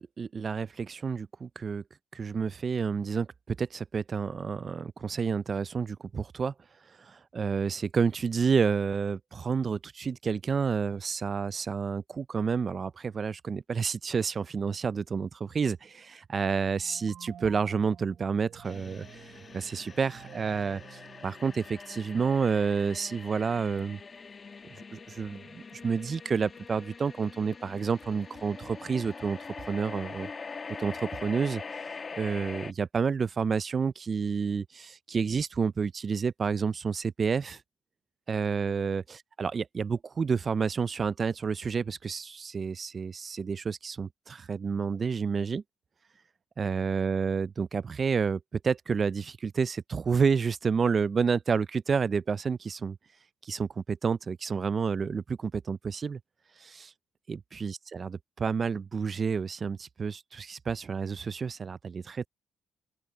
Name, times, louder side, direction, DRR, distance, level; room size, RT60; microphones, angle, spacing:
voice 1, 0.0-1.8 2.1-6.5 7.0-19.1 19.5-24.0 24.9-29.4 29.7-30.3 30.8-37.6 38.3-39.0 39.4-45.6 46.6-53.0 53.4-56.2 56.6-56.9 57.3-62.3, right 5 dB, 40° right, 0.4 m, -30 dB
sound 1, 16.6-22.1, right 10 dB, 65° right, 0.9 m, -51 dB
sound 2, 18.6-32.7, left 4 dB, 35° left, 1.5 m, -43 dB
Typing, 22.5-24.2 24.5-28.5, left 9 dB, 65° left, 5.4 m, -61 dB
open air
cardioid pair, 90°, 0 cm